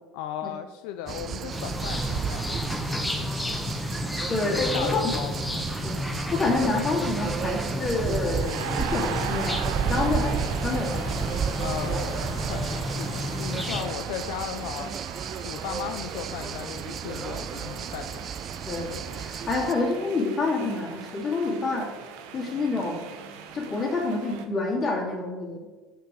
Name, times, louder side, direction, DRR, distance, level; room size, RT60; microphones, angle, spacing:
voice 1, 0.1-2.8 4.4-5.7 11.6-15.0 15.4-18.2, left 10 dB, 80° left, 8 dB, 0.4 m, -36 dB
sound 1, 1.1-19.7, right 7 dB, 35° right, 0.4 m, -33 dB
sound 2, 1.5-13.8, left 1 dB, 5° left, 0.8 m, -32 dB
voice 2, 4.3-5.4 5.8-11.2 11.9-12.0 18.6-21.9 22.3-23.0 23.5-25.7, left 3 dB, 30° left, -2 dB, 2.3 m, -28 dB
sound 3, 7.8-24.4, right 7 dB, 85° right, 0.9 m, -39 dB
6.8 x 6.4 x 4.6 m, 1.3 s
cardioid pair, 140°, 0 cm